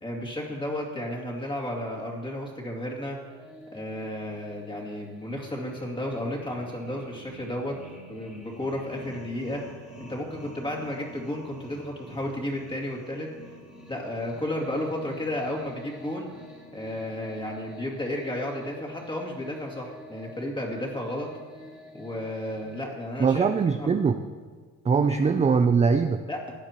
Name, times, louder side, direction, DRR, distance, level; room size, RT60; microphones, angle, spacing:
voice 1, 0.0-3.2 3.7-7.8 8.1-9.6 10.0-13.3 13.9-16.3 16.7-21.3 21.9-23.4 23.8-23.9 25.1-25.2 26.3-26.5, left 1 dB, 15° left, -2 dB, 2.5 m, -33 dB
sound 1, 3.3-22.8, equal, ahead, 2.4 m, -47 dB
voice 2, 23.2-24.2 24.8-26.2, right 5 dB, 20° right, 8 dB, 0.4 m, -22 dB
16.5 x 9.5 x 3.0 m, 1.5 s
cardioid pair, 100°, 33 cm